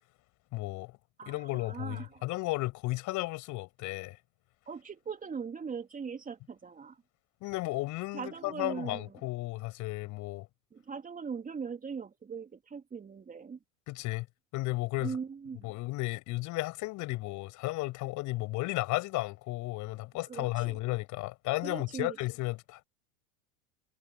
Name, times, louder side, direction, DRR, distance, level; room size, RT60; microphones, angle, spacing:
voice 1, 0.5-0.9 1.2-4.2 7.4-10.5 13.9-14.3 14.5-15.2 15.6-22.8, left 20 dB, 50° left, 7.4 m, -34 dB
voice 2, 1.2-2.2 4.7-7.0 8.1-9.1 10.7-13.6 15.0-15.7 20.3-20.8 21.6-22.2, right 6 dB, 20° right, 3.0 m, -40 dB
hypercardioid pair, 90°, 37 cm